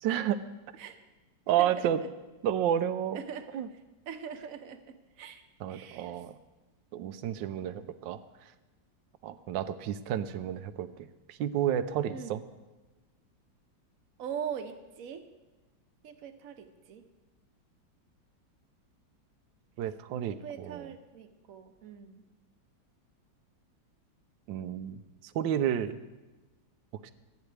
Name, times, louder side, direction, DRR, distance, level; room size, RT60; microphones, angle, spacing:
voice 1, 0.0-0.4 1.5-2.0 2.4-3.2 3.5-3.7 5.6-6.4 6.9-8.2 9.2-12.4 19.8-20.9 24.5-25.0 25.3-26.0 27.0-27.1, right 10 dB, 80° right, 12 dB, 1.3 m, -31 dB
voice 2, 1.6-1.9 3.1-3.5 4.1-5.4 5.7-6.2 7.0-7.3 12.1-12.4 14.2-15.3 16.0-17.1 20.3-22.2, right 8 dB, 55° right, 8 dB, 1.2 m, -42 dB
27.0 x 9.4 x 3.3 m, 1.2 s
omnidirectional pair, 2.0 m